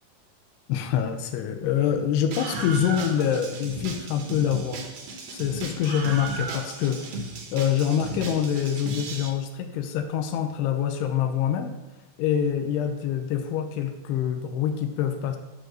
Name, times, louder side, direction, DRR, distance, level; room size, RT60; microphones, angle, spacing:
voice 1, 0.7-4.8 5.3-7.0 7.5-11.7 12.2-15.4, left 9 dB, 85° left, 6 dB, 2.8 m, -25 dB
Screaming, 2.3-9.3, right 3 dB, 85° right, 1.4 m, -35 dB
10.5 x 4.0 x 6.4 m, 1.0 s
omnidirectional pair, 4.8 m